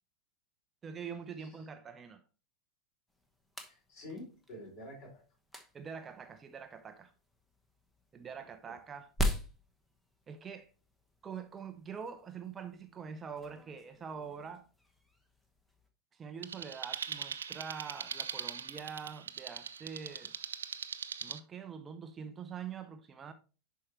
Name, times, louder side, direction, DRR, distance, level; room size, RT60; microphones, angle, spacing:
voice 1, 0.8-2.2 5.7-7.1 8.1-9.1 10.3-10.7 11.2-14.7 16.1-20.3 21.2-23.3, right 6 dB, 20° right, 0.6 m, -44 dB
sound 1, 3.1-15.9, equal, 5° left, 1.1 m, -43 dB
voice 2, 3.7-5.2 8.1-8.8, left 1 dB, 40° left, 4.7 m, -49 dB
sound 2, 16.4-21.4, right 7 dB, 65° right, 0.5 m, -41 dB
11.0 x 4.6 x 2.9 m
figure-of-eight pair, 90°, 0 cm